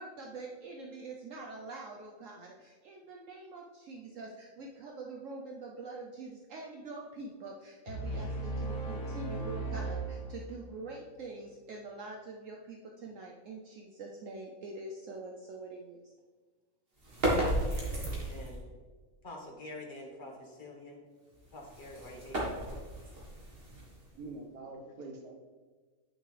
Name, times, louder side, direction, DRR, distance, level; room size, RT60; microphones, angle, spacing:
voice 1, 0.0-16.0, right 3 dB, 65° right, 0 dB, 1.0 m, -45 dB
sound 1, 7.9-10.8, right 2 dB, 85° left, 1.7 m, -37 dB
sound 2, 17.0-18.6 21.3-24.3, right 1 dB, 40° right, 1.8 m, -34 dB
voice 2, 18.1-18.6 19.2-21.0 21.5-22.8, left 2 dB, 35° left, 0 dB, 1.4 m, -47 dB
voice 3, 24.1-25.3, right 2 dB, 85° right, 1 dB, 1.7 m, -45 dB
9.0 x 6.2 x 3.3 m, 1.4 s
omnidirectional pair, 1.5 m